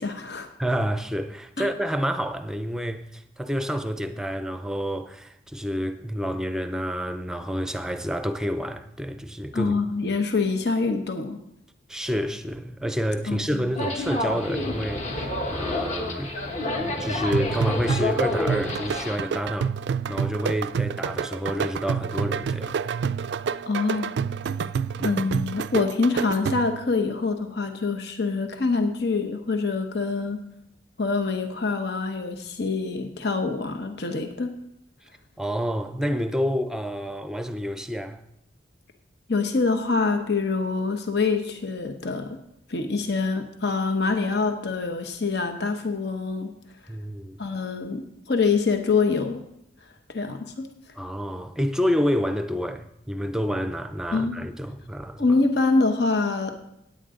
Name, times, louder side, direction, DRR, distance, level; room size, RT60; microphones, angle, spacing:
voice 1, 0.0-0.5 1.6-1.7 9.5-11.4 13.3-13.7 23.7-24.2 25.0-30.4 31.0-34.6 39.3-42.4 42.7-46.5 47.4-49.4 50.1-50.7 54.1-54.4 55.2-56.5, left 4 dB, 65° left, 1.0 m, -25 dB
voice 2, 0.6-9.8 11.9-16.4 16.8-19.8 20.1-22.7 25.0-25.1 35.4-38.2 46.9-47.4 51.0-55.3, equal, 5° right, 0.6 m, -28 dB
sound 1, 13.8-19.2, left 1 dB, 35° left, 1.3 m, -29 dB
sound 2, 17.3-26.9, right 6 dB, 70° right, 0.3 m, -28 dB
16.0 x 9.2 x 3.8 m
head